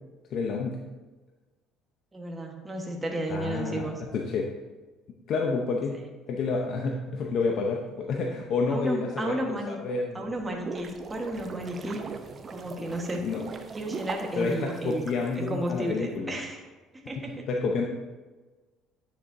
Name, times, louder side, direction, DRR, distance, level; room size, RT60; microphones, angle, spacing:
voice 1, 0.3-0.8 3.3-4.5 5.3-6.0 6.3-9.4 9.7-10.2 13.2-13.4 14.4-16.4 17.5-17.8, left 4 dB, 60° left, 1 dB, 0.7 m, -29 dB
voice 2, 2.1-4.0 8.7-9.8 10.1-12.0 12.5-13.3 13.7-15.0 15.3-16.6 17.1-17.4, right 1 dB, 15° right, 1 dB, 1.3 m, -33 dB
sound 1, 10.3-15.7, right 4 dB, 35° right, 0.6 m, -40 dB
10.0 x 6.8 x 2.7 m, 1.3 s
cardioid pair, 110°, 0 cm